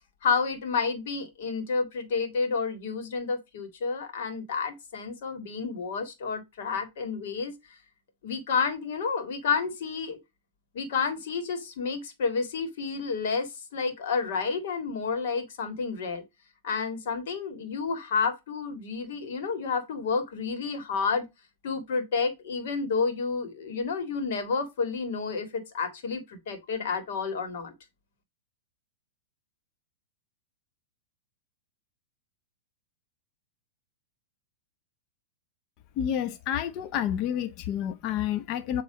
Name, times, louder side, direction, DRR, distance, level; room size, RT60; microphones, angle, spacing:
voice 1, 0.2-7.5 8.2-10.2 10.7-16.2 16.6-21.3 21.6-27.7, left 5 dB, 65° left, 2.0 m, -30 dB
voice 2, 36.0-38.8, left 10 dB, 45° left, 0.6 m, -29 dB
7.4 x 3.1 x 4.9 m
hypercardioid pair, 115°, 0 cm